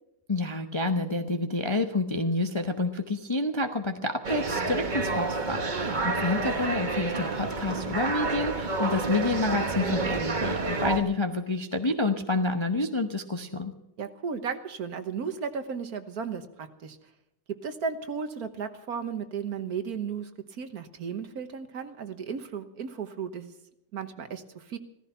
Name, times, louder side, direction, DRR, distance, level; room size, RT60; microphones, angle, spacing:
voice 1, 0.3-13.7, left 2 dB, 25° left, 5 dB, 0.7 m, -28 dB
sound 1, 4.2-11.0, right 3 dB, 30° right, 1.3 m, -29 dB
voice 2, 5.7-6.1 14.0-17.0 17.5-23.5 23.9-24.8, right 6 dB, 60° right, 9 dB, 1.5 m, -35 dB
16.0 x 14.5 x 5.7 m, 0.87 s
omnidirectional pair, 2.0 m